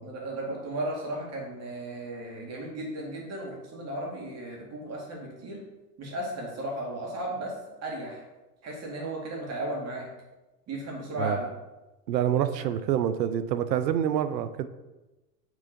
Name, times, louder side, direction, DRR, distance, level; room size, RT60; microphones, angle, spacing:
voice 1, 0.0-5.6 6.0-7.5 7.8-8.2 8.6-10.1 10.7-11.5, right 1 dB, 30° right, -1 dB, 2.3 m, -35 dB
voice 2, 12.1-14.7, right 10 dB, 85° right, 12 dB, 0.7 m, -27 dB
6.5 x 3.7 x 5.1 m, 1.1 s
hypercardioid pair, 105°, 48 cm